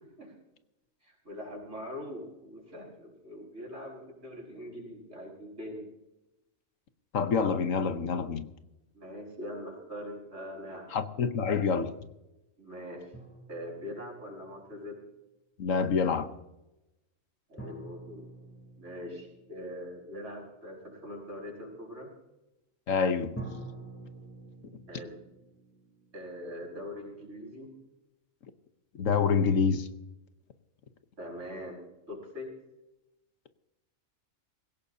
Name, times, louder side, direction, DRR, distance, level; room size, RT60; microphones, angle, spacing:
voice 1, 1.0-5.9 8.9-10.9 12.6-13.1 13.5-15.0 17.5-18.2 18.8-22.1 24.9-25.2 26.1-27.7 31.2-32.5, left 1 dB, 60° right, -1 dB, 6.1 m, -42 dB
voice 2, 7.1-8.5 10.9-12.0 15.6-16.3 22.9-23.4 29.0-29.9, left 5 dB, 70° left, 9 dB, 1.4 m, -27 dB
sound 1, 13.1-14.9 17.6-20.4 23.4-27.2, right 2 dB, 10° left, 3.0 m, -47 dB
20.5 x 17.5 x 2.8 m, 0.95 s
omnidirectional pair, 1.4 m